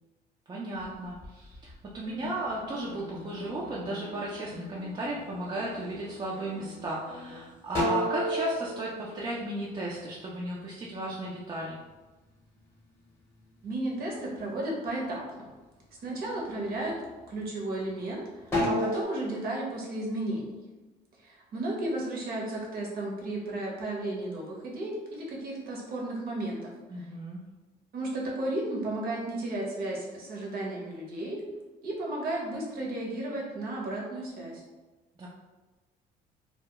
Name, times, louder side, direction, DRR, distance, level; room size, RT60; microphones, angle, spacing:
voice 1, 0.5-11.8 26.9-27.4 35.2-35.3, right 1 dB, 25° right, -5 dB, 0.4 m, -35 dB
sound 1, 0.8-2.7 3.2-3.9 4.4-5.0 5.3-6.3 6.8-6.9 7.2-10.1 10.5-12.8 13.1-14.2 14.5-15.2 15.7-15.9 16.4-18.0 18.4-19.0, left 1 dB, 15° left, 0.8 m, -32 dB
sound 2, 2.0-7.5, left 3 dB, 80° left, 0.5 m, -47 dB
voice 2, 13.6-15.5 16.0-17.0 17.3-20.5 21.2-27.1 27.9-31.4 31.8-34.6, right 1 dB, 60° right, -3 dB, 0.8 m, -34 dB
2.3 x 2.0 x 2.8 m, 1.2 s
cardioid pair, 110°, 17 cm